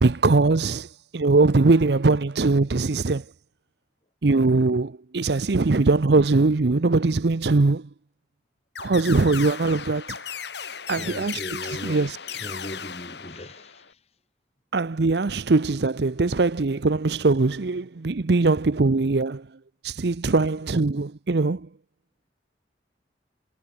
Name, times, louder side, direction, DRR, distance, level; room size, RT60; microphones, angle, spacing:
voice 1, 0.0-3.2 4.2-7.9 8.8-10.2 10.9-11.4 11.8-12.1 14.7-19.5 19.8-21.7, right 3 dB, 65° right, 0.7 m, -21 dB
sound 1, 8.7-13.9, left 7 dB, 70° left, 3.9 m, -36 dB
voice 2, 11.0-14.0, left 1 dB, 35° left, 2.3 m, -38 dB
head